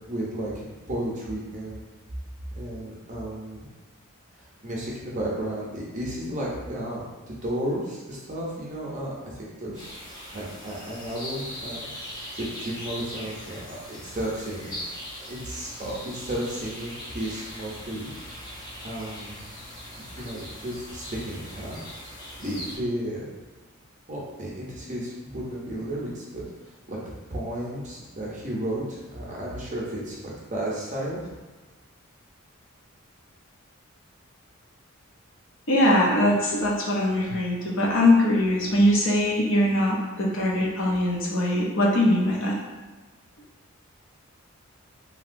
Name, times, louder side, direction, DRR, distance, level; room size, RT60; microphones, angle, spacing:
voice 1, 0.1-1.9 2.6-3.7 4.4-9.9 10.3-14.8 15.2-18.1 18.8-19.4 19.9-21.9 22.4-23.2 24.1-26.4 26.9-27.0 27.3-30.2 30.5-31.2, right 1 dB, 35° right, -4 dB, 0.6 m, -33 dB
sound 1, 9.7-22.8, left 1 dB, 20° left, 0.5 m, -40 dB
voice 2, 35.7-42.6, left 1 dB, 60° left, -3 dB, 0.6 m, -22 dB
2.9 x 2.8 x 2.5 m, 1.3 s
head